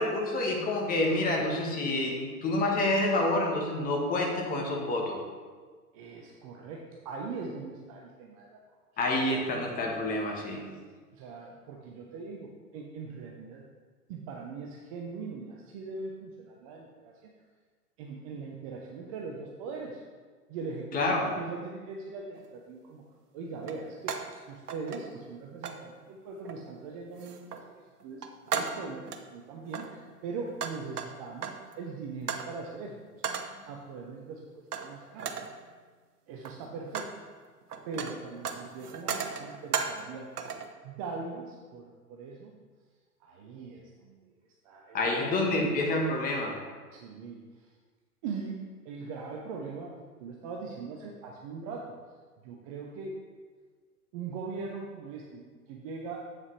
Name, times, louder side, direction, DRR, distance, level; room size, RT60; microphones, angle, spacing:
voice 1, 0.0-5.2 9.0-10.6 20.9-21.2 44.9-46.5, left 2 dB, 20° left, 0 dB, 1.2 m, -28 dB
voice 2, 5.9-8.6 11.1-13.6 14.1-17.3 18.0-20.0 20.5-23.0 23.3-35.3 36.3-37.2 37.9-40.3 40.8-42.5 43.2-44.2 44.6-45.6 46.9-47.7 48.2-52.0 52.4-53.2 54.1-56.3, right 4 dB, 25° right, 0 dB, 0.5 m, -41 dB
sound 1, 22.4-22.5 23.6-24.4 24.7-25.3 25.6-25.8 26.5-26.8 27.2-27.7 28.0-29.3 29.7-31.7 32.3-32.6 33.2-33.6 34.7-34.9 35.2-35.6 36.3-37.2 37.5-40.1 40.4-40.7, right 6 dB, 75° right, 0.9 m, -36 dB
7.6 x 7.2 x 3.2 m, 1.5 s
figure-of-eight pair, 110°, 47 cm